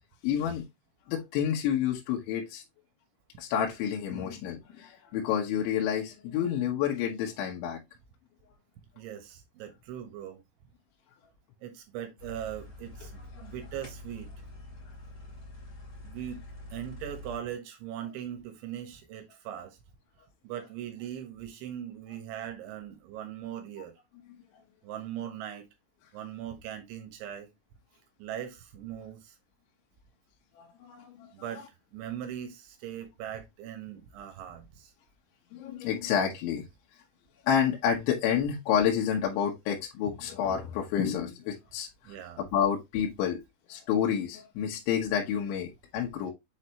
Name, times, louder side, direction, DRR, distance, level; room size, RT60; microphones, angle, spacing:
voice 1, 0.2-0.7 1.1-2.6 3.4-7.8 13.3-13.5 30.6-31.3 35.5-36.6 37.4-43.4 43.7-46.3, left 8 dB, 75° left, 3.2 m, -29 dB
voice 2, 9.0-10.4 11.6-14.3 16.0-16.4 16.7-19.8 20.4-23.9 24.8-25.6 26.1-27.5 28.2-29.4 31.3-31.6 31.9-34.9 42.1-42.4, right 10 dB, 75° right, 3.5 m, -40 dB
sound 1, 12.2-17.4, left 2 dB, 30° left, 1.9 m, -46 dB
7.7 x 4.2 x 3.1 m
omnidirectional pair, 5.8 m